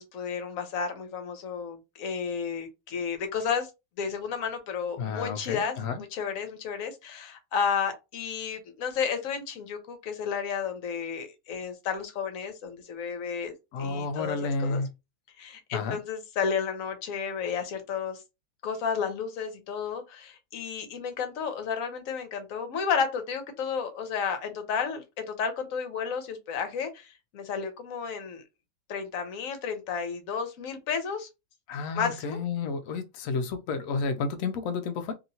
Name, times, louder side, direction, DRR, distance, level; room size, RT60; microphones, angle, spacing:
voice 1, 0.0-3.7 4.0-5.7 6.1-13.5 13.8-14.8 15.4-18.2 18.6-28.4 28.9-31.3 31.9-32.4, left 6 dB, 60° left, 0.9 m, -32 dB
voice 2, 5.0-6.0 13.7-14.9 15.7-16.0 31.7-35.1, left 4 dB, 90° left, 0.7 m, -31 dB
2.9 x 2.8 x 2.7 m
omnidirectional pair, 2.0 m